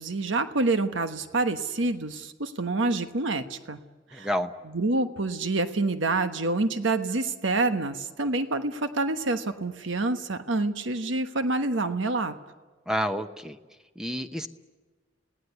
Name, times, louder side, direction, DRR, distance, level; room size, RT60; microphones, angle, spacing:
voice 1, 0.0-3.8 4.1-4.3 4.7-12.3, right 2 dB, 75° right, 9 dB, 1.2 m, -27 dB
voice 2, 4.1-4.5 12.9-13.6 14.0-14.5, equal, 5° right, 8 dB, 0.9 m, -29 dB
28.0 x 18.0 x 8.2 m, 1.4 s
head